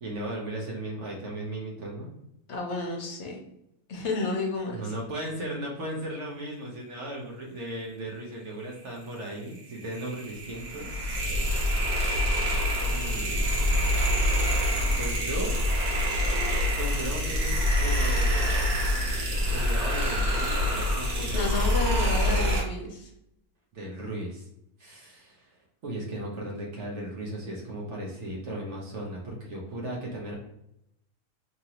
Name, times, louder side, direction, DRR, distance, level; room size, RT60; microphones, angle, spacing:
voice 1, 0.0-2.1 4.7-11.0 12.9-14.3 15.0-15.6 16.8-18.5 19.5-22.5 23.7-24.5 24.8-25.6 25.8-30.4, right 1 dB, 60° right, -2 dB, 0.9 m, -36 dB
voice 2, 2.5-3.4 3.9-4.9 21.3-23.1, left 3 dB, 60° left, 0 dB, 0.8 m, -31 dB
sound 1, 9.5-22.6, equal, 75° right, 1.3 m, -26 dB
2.9 x 2.6 x 2.8 m, 0.82 s
omnidirectional pair, 1.6 m